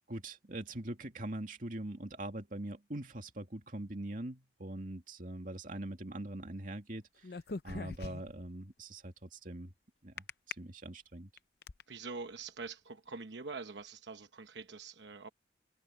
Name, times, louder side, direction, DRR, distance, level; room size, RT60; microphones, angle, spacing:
voice 1, 0.1-7.0 7.6-9.7 10.0-11.3, right 1 dB, 50° right, 2.4 m, -42 dB
sound 1, 7.2-8.5 10.2-10.5 11.1-11.8, left 3 dB, 60° left, 0.7 m, -41 dB
voice 2, 11.9-15.3, right 4 dB, 85° right, 0.9 m, -45 dB
head